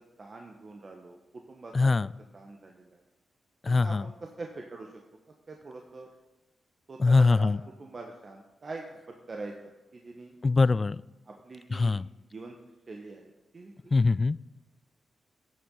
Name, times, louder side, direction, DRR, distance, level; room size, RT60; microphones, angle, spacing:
voice 1, 0.2-1.9 2.3-2.9 3.6-4.9 5.5-6.1 6.9-9.5 9.9-10.3 11.3-12.0 12.3-12.6 12.9-13.7, right 3 dB, 45° right, 1 dB, 1.2 m, -43 dB
voice 2, 1.7-2.1 3.6-4.1 7.0-7.6 10.4-11.0 11.7-12.1 13.9-14.4, left 3 dB, 40° left, 19 dB, 0.3 m, -22 dB
12.0 x 7.3 x 4.0 m, 1.1 s
supercardioid pair, 45°, 0 cm